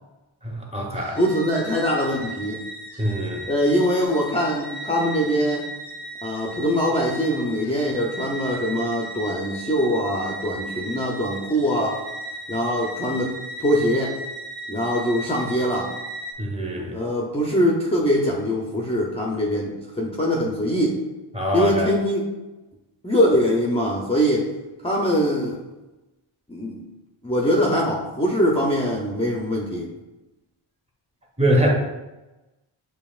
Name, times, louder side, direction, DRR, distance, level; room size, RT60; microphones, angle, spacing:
voice 1, 0.4-1.2 3.0-3.4 16.4-16.9 21.3-21.9 31.4-31.7, equal, 15° right, -1 dB, 0.9 m, -23 dB
sound 1, 0.9-16.3, right 1 dB, 45° right, 1.1 m, -36 dB
voice 2, 1.2-2.6 3.5-5.7 6.2-12.0 12.5-14.2 14.7-15.9 16.9-21.0 21.5-22.3 23.0-24.5 24.8-25.6 26.5-26.8 27.2-29.9, equal, 10° left, -2 dB, 0.5 m, -23 dB
7.1 x 2.9 x 2.4 m, 1.1 s
wide cardioid pair, 105°, 50 cm